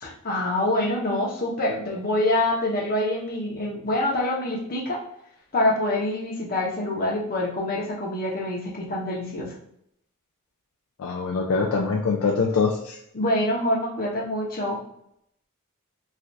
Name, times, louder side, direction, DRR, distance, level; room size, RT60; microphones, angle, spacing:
voice 1, 0.0-5.0 5.5-9.5 13.1-14.8, left 1 dB, 40° left, -2 dB, 0.8 m, -25 dB
voice 2, 11.0-13.0, left 4 dB, 65° left, -1 dB, 0.4 m, -24 dB
3.2 x 2.4 x 2.6 m, 0.74 s
head